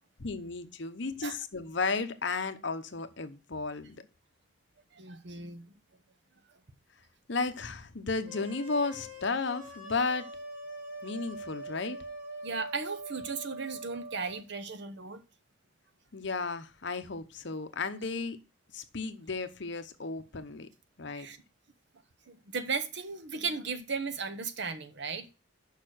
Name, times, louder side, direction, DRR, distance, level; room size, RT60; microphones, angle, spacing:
voice 1, 0.2-4.0 7.3-10.3 11.0-12.0 16.1-18.4 18.7-20.7 21.0-21.3, left 4 dB, 55° left, 0.8 m, -34 dB
voice 2, 4.9-5.6 12.4-15.2 21.1-21.4 22.3-25.3, right 4 dB, 55° right, 0.9 m, -36 dB
sound 1, 8.3-14.4, right 1 dB, 40° right, 3.0 m, -43 dB
6.6 x 5.6 x 6.3 m
head